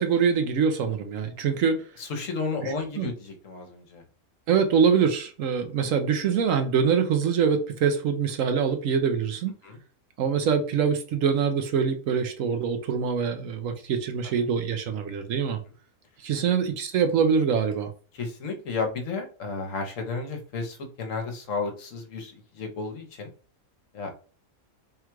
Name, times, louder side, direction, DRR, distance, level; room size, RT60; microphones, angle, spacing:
voice 1, 0.0-1.8 2.6-3.1 4.5-9.5 10.2-15.6 16.2-17.9, right 6 dB, 70° right, 7 dB, 1.0 m, -24 dB
voice 2, 2.0-4.0 9.6-9.8 14.2-14.3 18.1-23.3 23.9-24.1, left 4 dB, 65° left, 4 dB, 1.2 m, -33 dB
3.6 x 2.3 x 4.5 m, 0.38 s
omnidirectional pair, 1.5 m